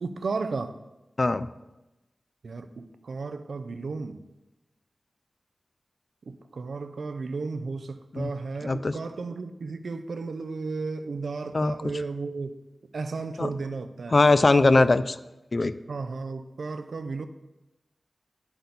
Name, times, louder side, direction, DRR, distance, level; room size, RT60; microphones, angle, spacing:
voice 1, 0.0-0.8 2.4-4.2 6.3-12.5 12.9-14.2 14.7-14.9 15.9-17.3, right 4 dB, 90° right, 9 dB, 0.6 m, -34 dB
voice 2, 1.2-1.5 8.1-8.3 8.6-8.9 11.5-11.7 13.4-13.5 14.1-15.1 15.5-15.7, left 3 dB, 50° left, 13 dB, 0.5 m, -20 dB
10.0 x 8.0 x 4.1 m, 0.98 s
wide cardioid pair, 60°, 0 cm